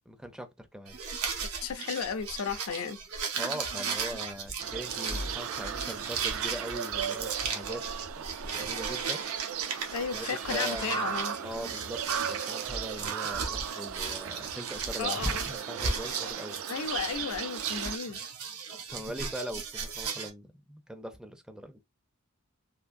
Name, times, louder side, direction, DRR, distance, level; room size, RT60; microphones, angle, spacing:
voice 1, 0.1-0.9 3.3-7.8 8.1-8.2 8.5-9.2 10.1-11.1 11.4-12.0 12.4-16.6 18.9-21.8, equal, 5° right, 0.4 m, -41 dB
sound 1, 0.9-20.3, right 5 dB, 85° right, 1.0 m, -36 dB
voice 2, 1.4-3.0 9.9-11.4 15.0-15.5 16.7-18.2, left 6 dB, 70° left, 0.5 m, -34 dB
sound 2, 4.6-18.0, right 8 dB, 65° right, 0.4 m, -37 dB
3.5 x 2.5 x 2.6 m
head